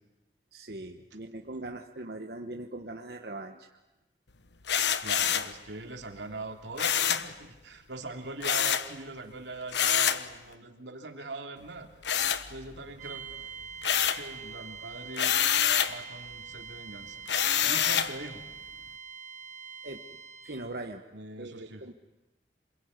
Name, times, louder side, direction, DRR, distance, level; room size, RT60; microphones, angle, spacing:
voice 1, 0.5-3.8 19.8-20.0 20.4-21.0 21.4-21.9, right 2 dB, 65° right, 4 dB, 1.2 m, -40 dB
sound 1, 4.7-5.5 6.8-7.3 8.4-8.9 9.7-10.3 12.0-12.9 13.3-14.3 15.1-16.0 17.3-18.2, left 9 dB, 80° left, 1.1 m, -26 dB
voice 2, 5.0-11.9 12.5-13.2 14.1-15.3 15.9-18.4 21.1-21.9, right 2 dB, 85° right, 4 dB, 3.0 m, -42 dB
sound 2, 13.0-20.7, right 6 dB, 45° right, 4.0 m, -44 dB
27.0 x 22.0 x 9.7 m, 1.1 s
head